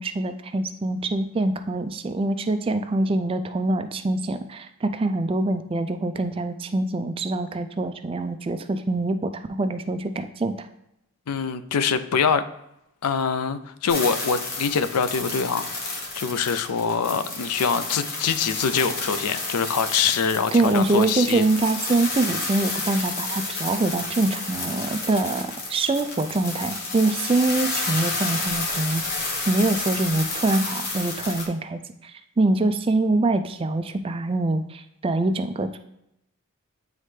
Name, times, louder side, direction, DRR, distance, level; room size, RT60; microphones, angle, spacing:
voice 1, 0.0-10.7 20.5-29.0 29.5-35.8, right 2 dB, 25° right, 9 dB, 0.3 m, -24 dB
voice 2, 11.3-12.4 13.0-21.4, left 6 dB, 90° left, 12 dB, 0.5 m, -24 dB
sound 1, 13.9-31.5, left 3 dB, 45° left, 1.1 m, -31 dB
9.1 x 3.2 x 3.2 m, 0.84 s
head